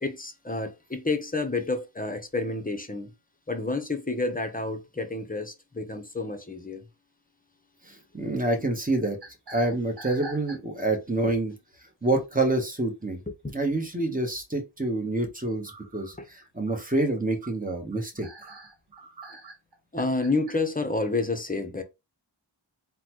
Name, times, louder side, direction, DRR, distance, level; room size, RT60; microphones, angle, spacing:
voice 1, 0.0-3.1 3.5-6.9 13.3-13.5 16.2-16.3 19.9-21.8, left 3 dB, 20° left, 0.7 m, -29 dB
voice 2, 7.8-9.2 9.5-11.5 12.0-13.2 13.5-16.1 16.6-18.3, right 2 dB, 20° right, 1.0 m, -27 dB
sound 1, 9.2-11.0 11.5-11.7 13.2-13.3 13.7-13.8 15.7-20.6, right 2 dB, 55° right, 1.0 m, -45 dB
3.8 x 2.2 x 3.0 m
wide cardioid pair, 40°, 45 cm